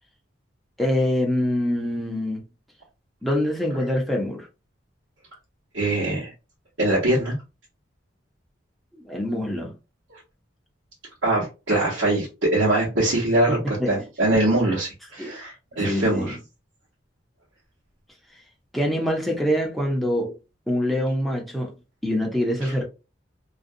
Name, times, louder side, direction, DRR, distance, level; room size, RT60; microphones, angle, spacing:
voice 1, 0.8-2.4 3.2-4.5 9.0-9.7 13.5-14.0 15.2-15.3 15.8-16.4 18.7-20.3 20.7-21.7 22.0-22.8, equal, ahead, 0.6 m, -25 dB
voice 2, 5.7-6.3 6.8-7.3 11.2-13.6 13.8-16.4 22.6-22.7, right 1 dB, 70° right, 1.0 m, -22 dB
2.5 x 2.2 x 2.5 m
head